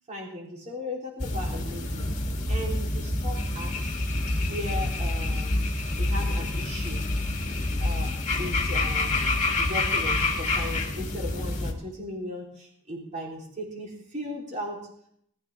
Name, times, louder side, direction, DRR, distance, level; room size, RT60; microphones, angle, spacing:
voice 1, 0.1-2.1 2.5-3.9 4.5-5.6 6.0-7.0 7.8-14.8, left 1 dB, 35° right, -2 dB, 3.8 m, -37 dB
sound 1, 1.2-11.7, left 2 dB, 35° left, 2.1 m, -27 dB
19.5 x 13.0 x 3.6 m, 0.67 s
head